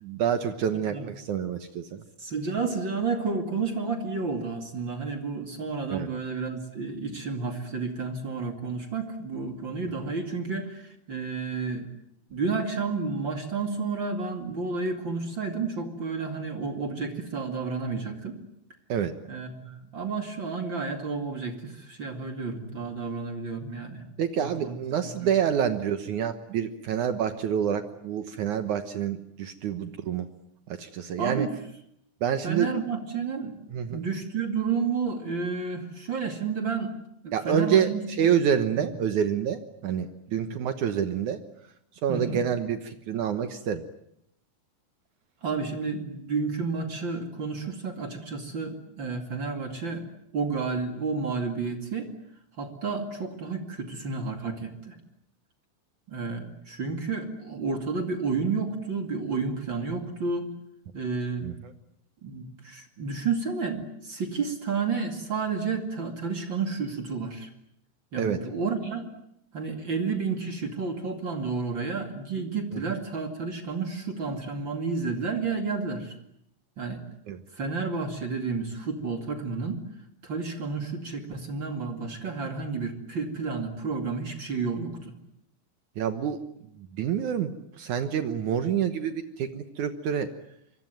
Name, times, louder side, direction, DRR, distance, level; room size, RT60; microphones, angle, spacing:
voice 1, 0.0-2.0 5.9-6.1 18.9-19.1 24.2-30.3 30.7-31.5 32.2-32.7 33.7-34.0 37.3-41.4 42.0-43.8 61.4-61.7 68.2-68.4 72.7-73.0 77.3-77.4 86.0-86.4 86.8-90.3, right 8 dB, 70° right, 9 dB, 1.9 m, -27 dB
voice 2, 2.2-11.8 12.3-18.4 19.3-24.0 24.4-24.8 25.0-25.3 31.2-31.5 32.4-33.5 33.9-36.9 37.2-38.3 38.8-38.9 42.1-42.4 45.4-50.0 50.3-52.1 52.6-55.0 56.1-60.5 60.9-61.5 62.2-67.5 68.1-69.1 69.5-76.2 76.8-77.0 77.5-79.8 80.2-85.1, right 4 dB, 35° right, 5 dB, 2.4 m, -31 dB
25.5 x 24.0 x 9.2 m, 0.75 s
omnidirectional pair, 5.0 m